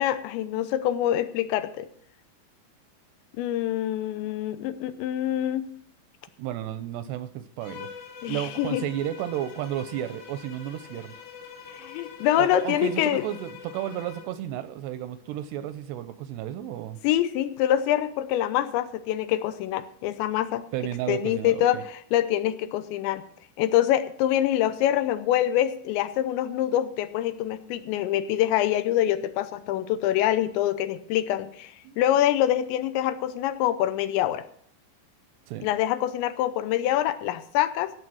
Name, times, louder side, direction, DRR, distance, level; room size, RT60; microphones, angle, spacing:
voice 1, 0.0-1.9 3.4-5.7 8.2-8.8 11.8-13.2 17.0-20.6 21.1-23.2 23.6-34.4 35.6-37.9, left 12 dB, 85° left, 12 dB, 3.1 m, -25 dB
voice 2, 6.4-7.9 8.3-11.1 12.4-17.0 20.7-21.8 31.9-32.0 35.5-35.7, right 11 dB, 80° right, 12 dB, 2.5 m, -33 dB
Bowed string instrument, 7.6-14.4, left 6 dB, 60° left, 3.3 m, -44 dB
16.0 x 7.2 x 6.2 m, 0.62 s
omnidirectional pair, 5.2 m